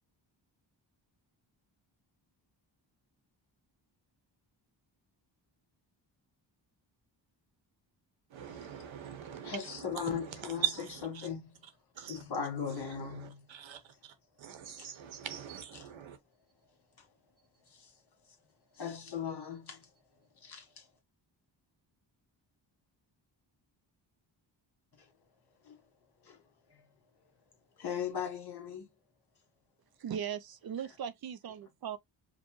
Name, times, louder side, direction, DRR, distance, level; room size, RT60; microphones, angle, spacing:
voice 1, 8.3-11.3 11.9-12.2 12.7-16.2, right 10 dB, 80° right, 1.0 m, -41 dB
voice 2, 9.4-10.6 11.2-11.6 12.1-13.4 14.8-14.9 17.0-17.1 17.7-17.9 18.7-19.9 20.4-20.9 25.6-25.8 26.2-26.4 27.8-28.9, left 7 dB, 55° left, 1.6 m, -38 dB
voice 3, 30.0-32.0, right 8 dB, 55° right, 0.5 m, -38 dB
5.1 x 2.2 x 3.0 m
wide cardioid pair, 105°, 46 cm